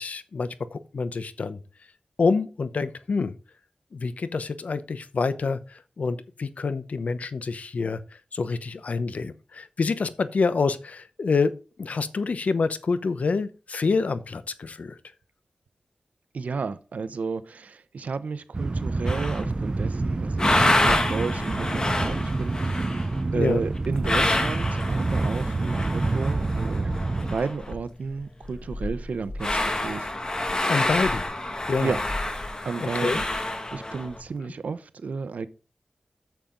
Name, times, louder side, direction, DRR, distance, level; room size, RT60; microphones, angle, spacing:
voice 1, 0.0-1.6 2.2-3.3 3.9-8.0 8.3-15.0 23.3-23.6 30.7-31.3 31.7-31.9 32.8-33.2, left 4 dB, 75° left, 0.8 m, -27 dB
voice 2, 16.3-23.0 23.3-30.1 31.8-32.0 32.6-33.2 33.7-35.5, right 5 dB, 85° right, 0.7 m, -32 dB
sound 1, 18.5-27.4, right 2 dB, 35° right, 0.4 m, -27 dB
sound 2, 19.0-19.6 20.0-27.8 28.1-28.2 28.4-34.2, left 1 dB, 30° left, 1.7 m, -28 dB
9.0 x 7.4 x 3.8 m
wide cardioid pair, 75°, 2 cm